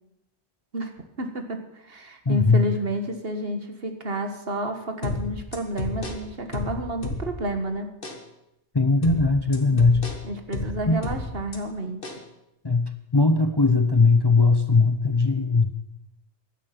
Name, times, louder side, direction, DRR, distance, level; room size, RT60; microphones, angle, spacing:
voice 1, 1.2-7.9 9.7-9.8 10.2-12.2, right 1 dB, 60° right, 6 dB, 1.8 m, -30 dB
voice 2, 2.3-2.6 8.7-10.1 10.9-11.0 12.6-15.7, left 3 dB, 25° left, 8 dB, 0.7 m, -19 dB
sound 1, 5.0-7.6 8.0-8.2 9.0-11.6 12.0-12.2, left 2 dB, 50° left, 1.9 m, -32 dB
16.5 x 11.5 x 5.9 m, 0.86 s
omnidirectional pair, 1.1 m